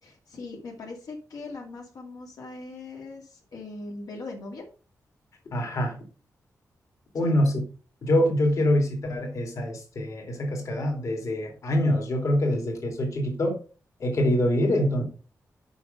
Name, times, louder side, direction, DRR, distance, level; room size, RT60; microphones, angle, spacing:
voice 1, 0.0-4.7 7.2-7.3, left 3 dB, 80° left, -1 dB, 2.4 m, -40 dB
voice 2, 5.5-6.0 7.1-7.5 8.0-13.6 14.0-15.0, left 1 dB, 55° left, 1 dB, 2.6 m, -25 dB
7.0 x 5.8 x 5.2 m, 0.36 s
wide cardioid pair, 150°, 6 cm